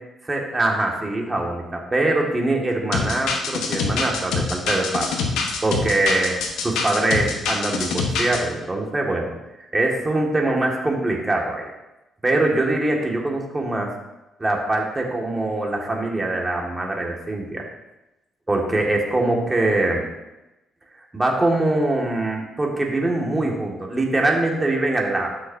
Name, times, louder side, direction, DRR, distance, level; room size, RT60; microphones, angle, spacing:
voice 1, 0.2-5.1 5.6-6.3 6.6-9.3 9.7-11.7 12.2-13.9 14.4-17.6 18.5-20.1 21.1-25.4, right 2 dB, 20° right, 0 dB, 2.0 m, -23 dB
sound 1, 2.9-8.4, left 4 dB, 85° left, 1.2 m, -25 dB
13.0 x 6.3 x 2.8 m, 0.98 s
cardioid pair, 90°, 0 cm